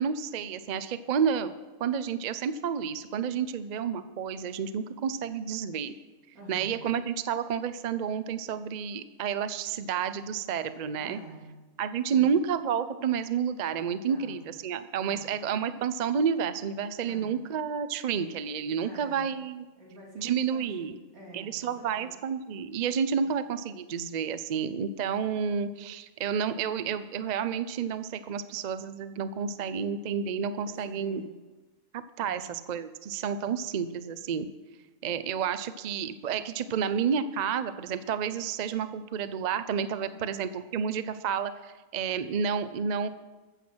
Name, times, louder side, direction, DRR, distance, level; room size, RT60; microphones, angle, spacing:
voice 1, 0.0-1.5 1.8-5.9 6.5-11.2 11.8-19.7 20.2-21.0 21.3-31.2 32.2-34.5 35.0-43.1, right 7 dB, 55° right, 12 dB, 0.5 m, -30 dB
voice 2, 6.3-6.9 11.0-11.6 12.1-12.3 14.0-14.4 15.0-15.4 17.0-17.3 18.8-19.3 19.8-22.1 23.1-23.3 30.7-31.3 32.2-32.6 40.0-40.3, right 1 dB, 80° right, -2 dB, 3.6 m, -48 dB
14.5 x 7.9 x 6.2 m, 1.2 s
omnidirectional pair, 1.5 m